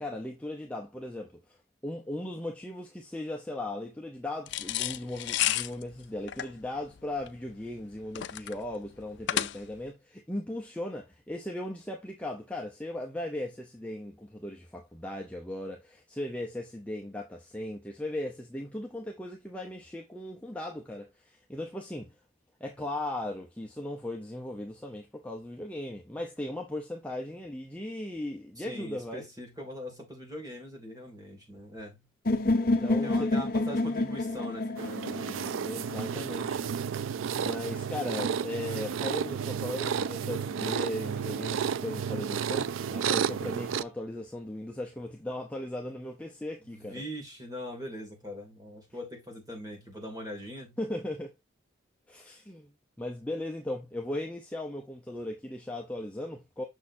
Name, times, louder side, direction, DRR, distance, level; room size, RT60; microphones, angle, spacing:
voice 1, 0.0-1.4 1.8-22.1 22.6-29.3 32.6-33.3 35.6-37.0 37.4-47.0 50.8-51.3 52.1-52.7 53.0-56.6, left 1 dB, 5° left, 0.7 m, -37 dB
sound 1, 4.5-9.9, left 12 dB, 60° left, 0.4 m, -32 dB
voice 2, 28.6-32.0 33.0-35.7 46.7-50.8, equal, 20° right, 2.5 m, -41 dB
sound 2, 32.3-36.2, left 2 dB, 45° left, 0.9 m, -28 dB
sound 3, 34.8-43.8, right 7 dB, 85° right, 0.4 m, -32 dB
6.4 x 6.3 x 2.7 m
head